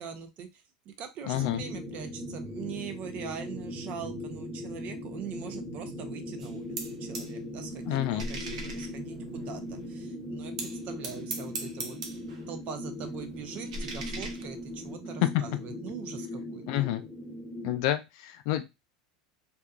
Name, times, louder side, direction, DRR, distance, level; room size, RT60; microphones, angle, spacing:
voice 1, 0.0-12.0 12.5-16.9, right 7 dB, 45° right, 7 dB, 0.6 m, -42 dB
voice 2, 1.3-1.6 7.9-8.3 15.2-15.4 16.7-17.0 17.6-18.6, left 14 dB, 60° left, 9 dB, 0.4 m, -28 dB
sound 1, 1.3-17.8, left 1 dB, 15° left, 0.9 m, -39 dB
sound 2, 6.4-7.3 7.6-9.9 10.6-12.4 12.7-14.9, right 2 dB, 85° right, 0.7 m, -40 dB
2.8 x 2.2 x 2.3 m, 0.22 s
hypercardioid pair, 95°, 3 cm